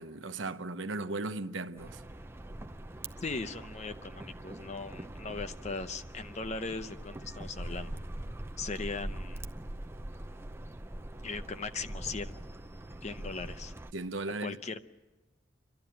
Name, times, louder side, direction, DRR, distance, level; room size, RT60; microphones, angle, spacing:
voice 1, 0.0-2.0 13.9-14.6, right 2 dB, 80° right, 0.9 m, -36 dB
sound 1, 1.8-13.9, right 1 dB, 15° right, 0.6 m, -43 dB
voice 2, 3.2-8.0 8.6-9.5 11.2-12.4 13.0-13.7 14.4-14.8, left 4 dB, 35° left, 0.7 m, -39 dB
29.0 x 12.5 x 8.9 m
head